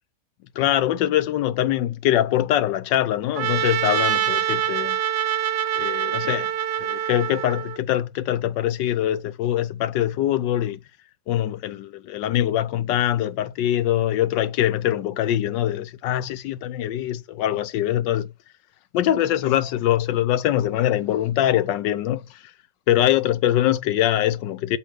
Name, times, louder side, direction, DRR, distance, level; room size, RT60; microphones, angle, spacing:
voice 1, 0.6-5.0 5.8-6.5 6.8-10.8 11.3-18.3 18.9-22.4 22.9-24.8, left 12 dB, 85° left, 1.4 m, -23 dB
Trumpet, 3.3-7.8, right 10 dB, 75° right, 1.4 m, -25 dB
8.5 x 3.0 x 6.4 m
omnidirectional pair, 1.9 m